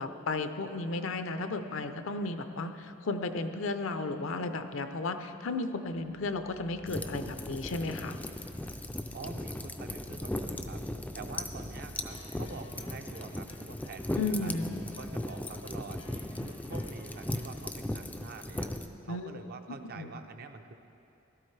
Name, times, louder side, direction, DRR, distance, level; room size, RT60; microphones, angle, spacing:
voice 1, 0.0-8.2 14.2-14.7 19.1-19.3 20.0-20.1, left 3 dB, 70° left, 8 dB, 0.6 m, -34 dB
sound 1, 6.1-18.6, equal, 80° right, 3.4 m, -53 dB
sound 2, 6.9-18.9, left 1 dB, 5° left, 0.4 m, -38 dB
voice 2, 9.1-10.8 11.1-14.5 15.0-18.7 19.0-20.7, right 4 dB, 50° right, 7 dB, 0.6 m, -46 dB
Wind instrument woodwind instrument, 12.1-17.9, left 2 dB, 90° left, 1.6 m, -56 dB
16.5 x 12.5 x 3.3 m, 2.8 s
head